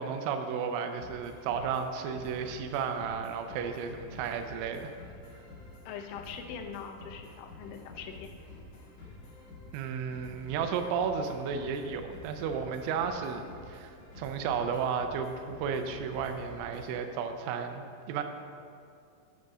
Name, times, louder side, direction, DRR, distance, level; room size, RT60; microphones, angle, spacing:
voice 1, 0.0-4.9 9.7-18.2, right 6 dB, 85° right, 6 dB, 2.9 m, -33 dB
sound 1, 1.0-17.0, left 2 dB, 50° left, 3.2 m, -49 dB
voice 2, 5.9-8.3, left 7 dB, 80° left, 4 dB, 3.0 m, -42 dB
8.7 x 5.3 x 6.1 m, 2.3 s
omnidirectional pair, 5.6 m